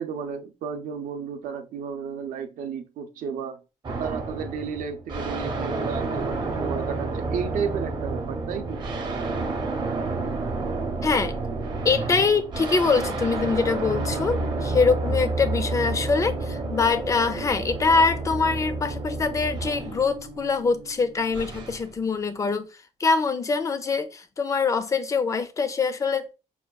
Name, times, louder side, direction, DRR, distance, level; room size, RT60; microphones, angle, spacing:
voice 1, 0.0-3.6 4.0-8.8, right 6 dB, 75° right, 0.5 m, -33 dB
sound 1, 3.8-21.9, right 3 dB, 35° right, 0.7 m, -30 dB
voice 2, 11.0-11.4 11.8-22.7 23.0-26.3, left 4 dB, 25° left, 0.4 m, -24 dB
5.5 x 2.3 x 2.2 m
cardioid pair, 150°, 14 cm